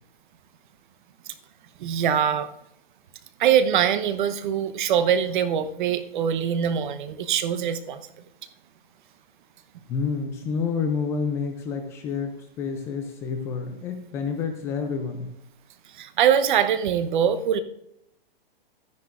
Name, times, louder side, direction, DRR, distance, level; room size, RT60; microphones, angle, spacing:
voice 1, 1.8-2.5 3.4-8.0 16.0-17.6, right 8 dB, 55° right, 11 dB, 0.9 m, -23 dB
voice 2, 9.9-15.3, left 5 dB, 10° left, 5 dB, 0.3 m, -29 dB
12.5 x 10.5 x 2.5 m, 0.76 s
hypercardioid pair, 140°, 30 cm